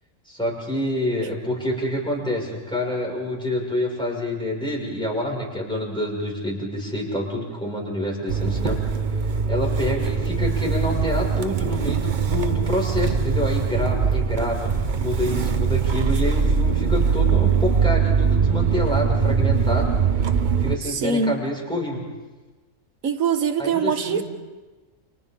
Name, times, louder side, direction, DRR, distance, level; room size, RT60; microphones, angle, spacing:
voice 1, 0.3-8.9 9.5-19.9 20.6-22.0 23.6-24.2, left 1 dB, 5° left, -2 dB, 6.0 m, -27 dB
Motor vehicle (road) / Engine starting, 8.3-20.8, right 6 dB, 40° right, 0.9 m, -22 dB
voice 2, 20.9-21.4 23.0-24.2, right 5 dB, 85° right, 9 dB, 1.6 m, -23 dB
29.5 x 29.0 x 3.8 m, 1.2 s
omnidirectional pair, 1.4 m